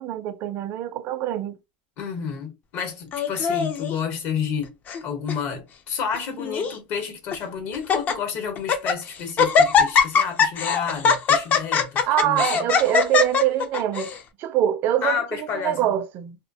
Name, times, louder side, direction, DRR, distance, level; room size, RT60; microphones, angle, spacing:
voice 1, 0.0-1.6 12.1-14.1 14.4-16.4, right 12 dB, 45° right, 0.4 m, -24 dB
voice 2, 2.0-4.7 5.0-12.7 15.0-16.0, left 7 dB, 50° left, 0.9 m, -30 dB
Laughter, 3.1-3.9 4.6-5.0 5.3-5.4 6.1-6.8 7.3-7.4 7.7-8.1 8.6-9.0 9.4-14.2, left 6 dB, 35° left, 0.4 m, -21 dB
2.3 x 2.1 x 2.6 m
supercardioid pair, 125°, 5 cm